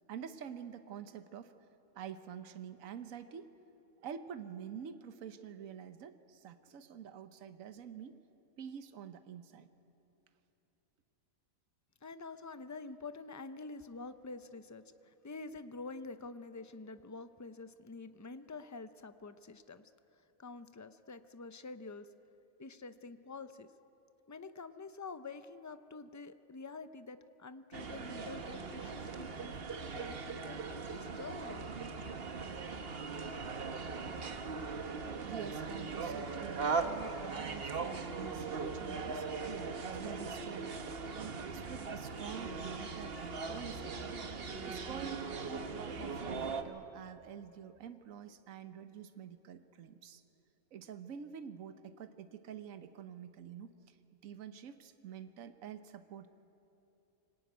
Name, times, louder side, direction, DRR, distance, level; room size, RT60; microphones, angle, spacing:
voice 1, 0.1-1.5 1.9-3.5 4.0-8.2 8.6-9.7 35.2-39.3 40.0-44.0 44.6-50.2 50.7-54.0 54.2-56.3, right 8 dB, 75° right, 10 dB, 1.3 m, -47 dB
voice 2, 12.0-22.1 22.6-23.7 24.3-29.6 29.9-31.7, left 3 dB, 30° left, 11 dB, 0.3 m, -47 dB
sound 1, 27.7-46.6, right 4 dB, 45° right, 1.3 m, -39 dB
24.5 x 19.0 x 9.4 m, 3.0 s
omnidirectional pair, 1.4 m